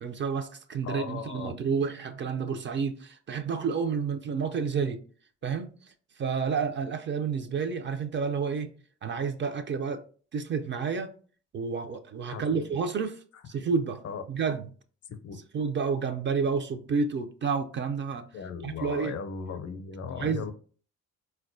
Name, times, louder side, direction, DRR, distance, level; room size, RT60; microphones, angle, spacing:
voice 1, 0.0-5.0 5.4-5.7 6.2-8.7 9.0-10.0 10.3-11.1 11.5-14.0 14.3-14.7 15.5-18.3 18.6-19.1 20.2-20.5, right 5 dB, 40° right, 0.4 m, -30 dB
voice 2, 0.8-1.5 12.3-12.8 14.0-14.2 15.1-15.4 18.3-20.5, left 6 dB, 55° left, 0.5 m, -37 dB
4.1 x 2.2 x 2.5 m
cardioid pair, 90°, 30 cm